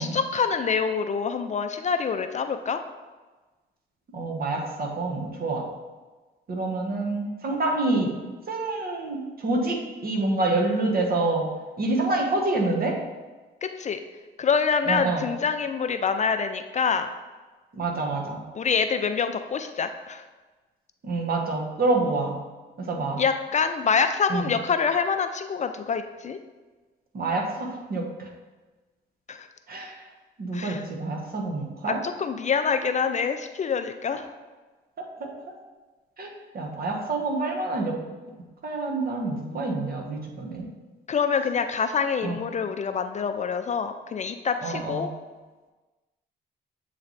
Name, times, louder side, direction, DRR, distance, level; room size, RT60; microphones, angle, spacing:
voice 1, 0.0-2.8 13.6-14.0 14.4-17.1 18.5-20.2 23.2-26.4 29.3-29.5 30.5-30.9 31.9-34.3 41.1-45.1, left 6 dB, 35° left, 8 dB, 0.4 m, -26 dB
voice 2, 4.1-5.6 6.5-8.1 8.5-11.4 11.8-12.9 14.9-15.2 17.7-18.4 21.0-22.4 22.9-23.2 24.3-24.5 27.1-28.3 29.7-30.0 30.4-32.0 35.2-35.3 36.2-37.9 38.6-40.7 42.2-42.4 44.6-45.0, right 2 dB, 50° right, 1 dB, 1.2 m, -27 dB
7.8 x 3.2 x 4.0 m, 1.2 s
cardioid pair, 90°, 20 cm